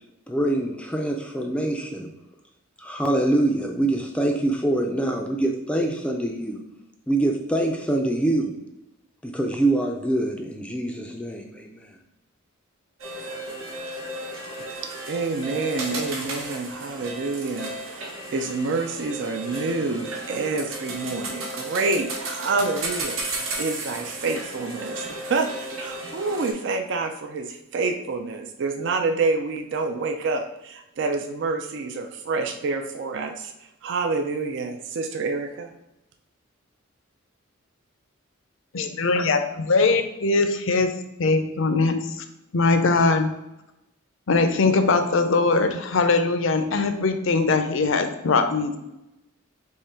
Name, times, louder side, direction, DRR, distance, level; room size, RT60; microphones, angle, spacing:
voice 1, 0.3-2.1 2.8-6.6 7.1-8.6 9.2-12.0, right 1 dB, 5° left, 2 dB, 0.4 m, -25 dB
sound 1, 13.0-26.5, right 2 dB, 80° right, 1.1 m, -34 dB
voice 2, 15.1-23.2 23.6-33.5 33.8-35.7, right 3 dB, 60° right, 4 dB, 0.4 m, -27 dB
voice 3, 38.7-40.9 41.2-42.2 42.5-43.3 44.3-48.8, left 3 dB, 65° left, 7 dB, 0.5 m, -21 dB
3.7 x 3.1 x 4.3 m, 0.89 s
head